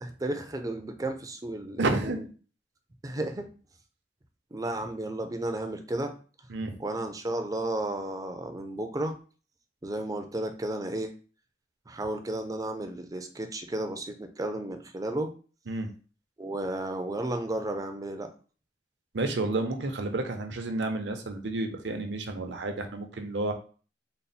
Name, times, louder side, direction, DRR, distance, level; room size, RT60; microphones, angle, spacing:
voice 1, 0.0-2.3 3.0-3.5 4.5-6.1 6.8-9.1 9.8-11.1 11.9-15.3 16.4-18.3, right 1 dB, 20° right, 6 dB, 0.4 m, -33 dB
voice 2, 1.8-2.2 6.5-6.7 15.7-15.9 19.1-23.5, right 2 dB, 80° right, 5 dB, 0.7 m, -30 dB
4.0 x 2.1 x 4.0 m, 0.39 s
head